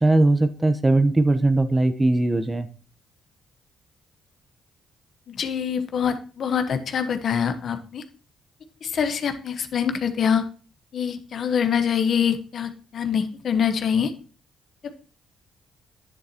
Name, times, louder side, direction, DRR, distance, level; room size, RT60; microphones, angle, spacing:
voice 1, 0.0-2.7, right 2 dB, 20° right, 10 dB, 0.9 m, -19 dB
voice 2, 5.3-8.0 8.8-10.5 10.9-14.1 14.8-14.9, left 7 dB, 65° left, 8 dB, 1.0 m, -24 dB
9.8 x 7.9 x 2.9 m, 0.38 s
supercardioid pair, 65°, 0 cm